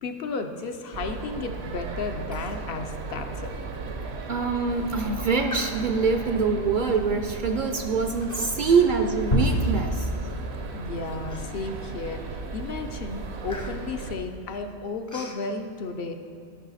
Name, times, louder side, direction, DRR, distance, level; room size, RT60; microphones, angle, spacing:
voice 1, 0.0-3.6 10.7-16.2, left 4 dB, 65° left, 6 dB, 0.8 m, -33 dB
sound 1, 0.9-14.2, right 4 dB, 75° right, 1.0 m, -36 dB
Human voice, 2.3-2.6 3.0-3.1 3.6-3.7 4.2-4.5 5.5-6.2 6.9-7.2 8.2-8.8 9.2-10.2 10.7-10.8 11.3-11.9 12.3-12.6 12.8-15.4, left 2 dB, 20° left, 0.5 m, -43 dB
voice 2, 4.3-10.1, right 4 dB, 60° right, 5 dB, 0.6 m, -24 dB
sound 2, 9.3-11.7, equal, 80° left, 2.9 m, -27 dB
12.0 x 5.6 x 4.0 m, 2.5 s
omnidirectional pair, 1.1 m